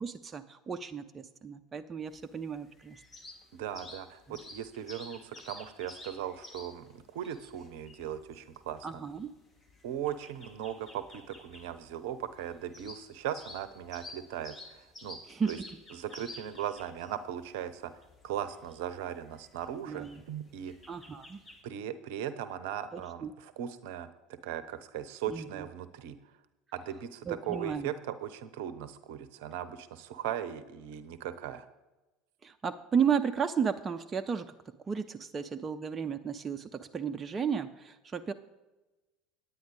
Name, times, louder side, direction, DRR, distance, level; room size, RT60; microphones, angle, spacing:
voice 1, 0.0-3.0 4.3-4.4 8.8-9.3 15.3-15.7 19.9-20.2 20.9-21.4 22.9-23.3 25.3-25.7 27.3-27.9 32.4-38.3, right 7 dB, 25° right, 7 dB, 0.6 m, -33 dB
sound 1, 2.1-21.6, left 2 dB, 25° left, 2.0 m, -52 dB
voice 2, 3.5-9.0 9.8-15.2 15.5-15.6 15.9-17.9 18.2-20.7 21.6-26.2 26.7-31.7, right 10 dB, 60° right, 13 dB, 0.7 m, -38 dB
9.4 x 9.4 x 4.9 m, 1.1 s
figure-of-eight pair, 70°, 0 cm